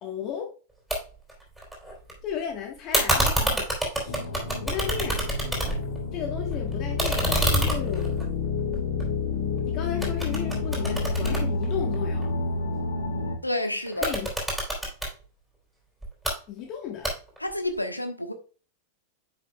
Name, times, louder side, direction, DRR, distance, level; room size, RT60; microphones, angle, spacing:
voice 1, 0.0-0.5 2.2-4.2 4.6-5.3 6.1-8.2 9.6-12.3 14.0-14.3 16.5-17.1, left 8 dB, 35° left, 1.3 m, -34 dB
sound 1, 0.9-1.0 1.3-2.1 2.9-6.0 6.3-9.6 10.0-12.2 13.9-15.1 16.0-16.3 17.0-17.5, right 1 dB, ahead, 3.5 m, -27 dB
sound 2, 4.1-13.4, left 4 dB, 60° left, 1.5 m, -29 dB
voice 2, 13.4-14.1 17.4-18.3, left 1 dB, 85° left, 1.1 m, -29 dB
9.9 x 6.2 x 2.3 m
figure-of-eight pair, 90°, 0 cm